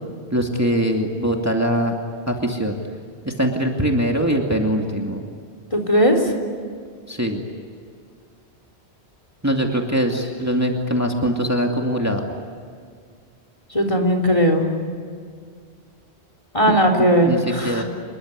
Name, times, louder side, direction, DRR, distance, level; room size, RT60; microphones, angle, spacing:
voice 1, 0.3-1.9 2.3-2.8 3.2-5.2 7.1-7.4 9.4-12.2 16.7-16.8 17.2-17.8, equal, 15° right, 1 dB, 2.4 m, -22 dB
voice 2, 5.7-6.3 13.7-14.7 16.5-17.8, equal, 30° left, 4 dB, 3.7 m, -18 dB
28.0 x 22.0 x 9.7 m, 2.1 s
omnidirectional pair, 1.1 m